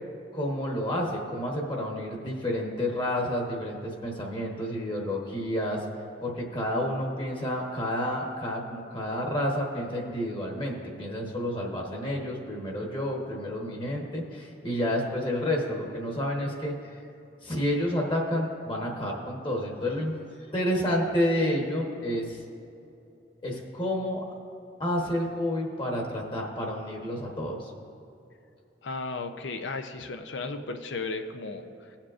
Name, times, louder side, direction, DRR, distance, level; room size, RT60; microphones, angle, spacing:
voice 1, 0.3-5.8 6.2-16.9 17.4-20.1 20.5-22.4 23.4-24.2 24.8-27.7, left 1 dB, 30° left, 0 dB, 1.1 m, -30 dB
voice 2, 28.8-31.7, left 3 dB, 85° left, 7 dB, 0.6 m, -34 dB
17.5 x 7.3 x 2.5 m, 2.7 s
head